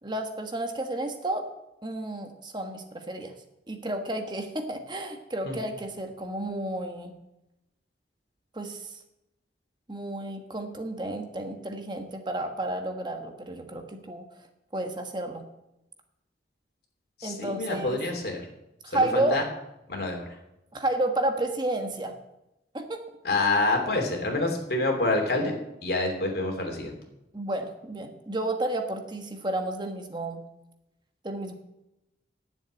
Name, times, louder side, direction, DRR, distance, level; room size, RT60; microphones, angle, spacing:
voice 1, 0.0-1.5 1.8-3.3 3.7-7.1 8.5-8.9 9.9-14.2 14.7-15.5 17.2-18.0 18.8-19.4 20.7-22.1 22.7-23.0 27.3-30.4 31.2-31.5, right 1 dB, 25° right, 5 dB, 1.3 m, -31 dB
voice 2, 17.2-18.4 18.8-19.4 19.9-20.4 23.2-25.5 25.8-26.9, left 2 dB, 60° left, 2 dB, 2.9 m, -27 dB
9.9 x 7.4 x 9.0 m, 0.90 s
head